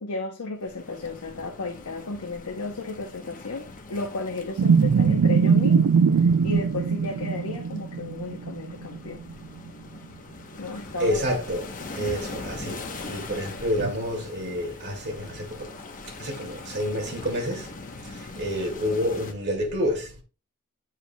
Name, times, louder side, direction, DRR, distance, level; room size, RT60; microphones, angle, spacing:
voice 1, 0.0-9.2 10.6-11.3, left 3 dB, 75° left, 0.8 m, -33 dB
sound 1, 0.6-19.3, left 3 dB, 40° left, 0.9 m, -42 dB
sound 2, 4.6-9.3 9.7-9.8 13.7-13.9, right 6 dB, 65° right, 0.4 m, -21 dB
voice 2, 11.0-15.7 16.1-17.7 18.0-20.2, equal, 50° right, 2.0 m, -29 dB
9.1 x 4.8 x 2.2 m
head